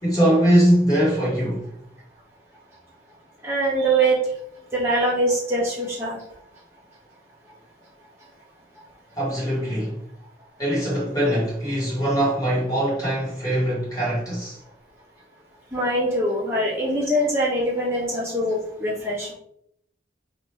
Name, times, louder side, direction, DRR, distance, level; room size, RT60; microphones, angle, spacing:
voice 1, 0.0-1.7 9.1-10.0 10.6-14.6, equal, 20° left, 1.2 m, -21 dB
voice 2, 3.4-4.2 4.7-6.2 15.7-19.3, right 1 dB, 15° right, 1.1 m, -23 dB
2.9 x 2.5 x 3.2 m
head